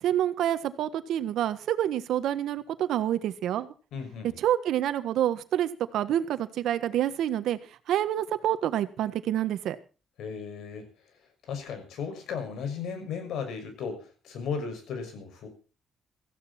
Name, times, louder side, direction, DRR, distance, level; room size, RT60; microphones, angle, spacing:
voice 1, 0.0-3.7 4.2-7.6 7.9-9.8, right 11 dB, 80° right, 12 dB, 1.5 m, -27 dB
voice 2, 3.9-4.3 10.2-10.9 11.4-15.5, left 6 dB, 80° left, 7 dB, 6.2 m, -35 dB
17.5 x 15.0 x 4.4 m, 0.36 s
cardioid pair, 90°, 0 cm